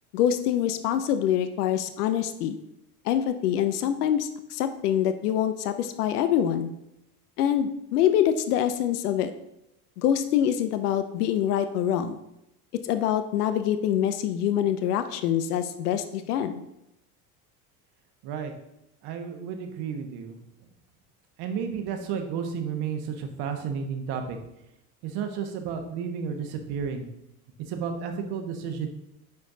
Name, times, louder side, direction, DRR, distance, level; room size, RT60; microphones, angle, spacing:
voice 1, 0.1-2.6 3.0-6.7 7.4-9.3 10.0-12.2 12.8-16.5, left 10 dB, 90° left, 10 dB, 0.6 m, -25 dB
voice 2, 19.0-20.4 21.4-24.4 25.0-27.0 27.7-28.9, right 6 dB, 60° right, 5 dB, 1.2 m, -32 dB
9.4 x 4.5 x 2.7 m, 0.85 s
hypercardioid pair, 90°, 45 cm